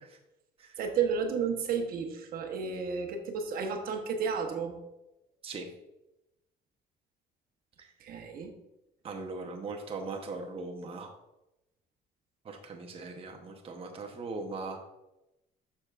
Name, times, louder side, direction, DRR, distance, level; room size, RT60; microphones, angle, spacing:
voice 1, 0.8-4.8 8.0-8.5, right 6 dB, 60° right, 4 dB, 1.0 m, -32 dB
voice 2, 9.0-11.1 12.4-14.8, right 3 dB, 35° right, 2 dB, 0.9 m, -39 dB
7.1 x 6.5 x 2.5 m, 0.93 s
cardioid pair, 110°, 17 cm